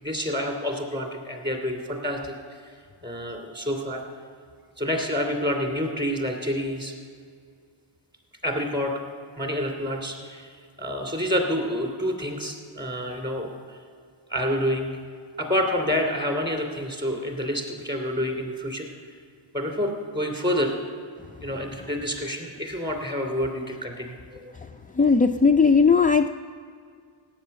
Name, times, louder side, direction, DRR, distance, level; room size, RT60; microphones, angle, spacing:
voice 1, 0.0-2.3 3.0-4.0 4.8-6.9 8.4-8.9 9.4-10.5 10.8-13.8 14.3-14.9 15.4-18.9 19.5-20.7 21.4-24.5, equal, 20° right, 2 dB, 2.8 m, -28 dB
voice 2, 25.0-26.3, left 5 dB, 20° left, 6 dB, 0.4 m, -17 dB
17.0 x 8.9 x 6.7 m, 2.1 s
wide cardioid pair, 80°, 48 cm